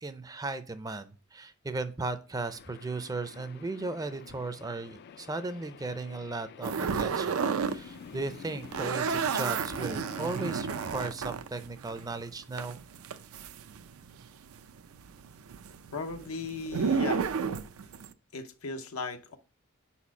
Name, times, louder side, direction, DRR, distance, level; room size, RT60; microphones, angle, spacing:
voice 1, 0.0-12.8, right 3 dB, 15° right, 0.4 m, -36 dB
sound 1, 2.3-11.0, left 7 dB, 50° left, 0.3 m, -48 dB
sound 2, 6.6-7.8 8.1-14.2 14.5-18.1, right 6 dB, 85° right, 0.5 m, -32 dB
voice 2, 15.9-17.3 18.3-19.4, left 4 dB, 90° left, 0.8 m, -37 dB
5.0 x 4.3 x 5.8 m
head